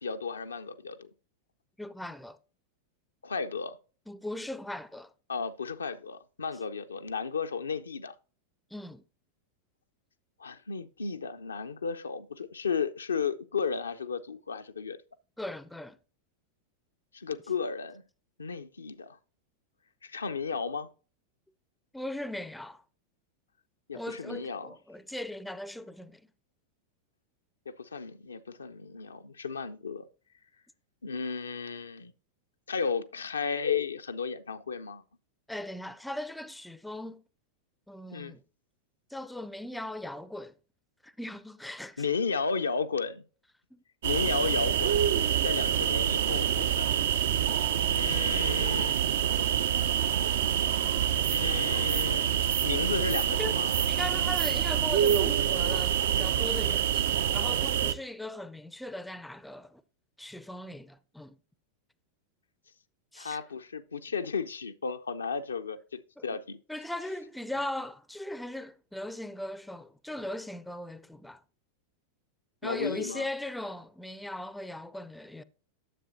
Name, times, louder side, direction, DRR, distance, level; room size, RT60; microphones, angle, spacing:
voice 1, 0.0-1.1 3.2-3.8 5.3-8.1 10.4-15.0 17.1-18.0 18.4-19.2 20.0-20.9 23.9-24.8 27.7-30.1 31.0-32.1 32.7-35.0 38.1-38.4 42.0-43.2 44.0-45.1 45.4-46.9 47.9-49.0 51.3-53.7 63.2-66.6 72.6-73.3, left 5 dB, 75° left, 0.5 m, -34 dB
voice 2, 1.8-2.4 4.1-5.1 8.7-9.0 15.4-16.0 20.5-20.6 21.9-22.8 23.9-26.2 35.5-37.2 37.9-38.4 39.1-40.5 41.0-42.0 43.7-43.8 50.8-50.9 53.4-53.6 53.9-59.8 60.2-61.4 63.1-63.4 66.2-66.3 66.7-71.4 72.6-75.4, left 1 dB, 5° left, 0.4 m, -39 dB
sound 1, 44.0-57.9, right 9 dB, 60° right, 0.4 m, -26 dB
10.0 x 7.3 x 2.6 m
figure-of-eight pair, 90°, 0 cm